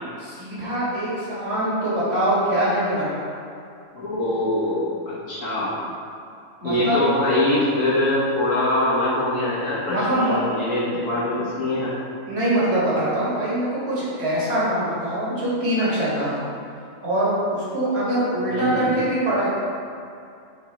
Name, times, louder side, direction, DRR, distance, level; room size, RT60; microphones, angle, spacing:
voice 1, 0.2-3.3 6.6-7.0 9.9-10.4 12.3-16.4 17.0-19.5, right 1 dB, 50° right, -9 dB, 2.0 m, -23 dB
voice 2, 3.9-5.7 6.6-11.9 18.5-18.9, left 1 dB, 70° left, -9 dB, 1.6 m, -23 dB
8.7 x 3.6 x 3.0 m, 2.5 s
omnidirectional pair, 1.4 m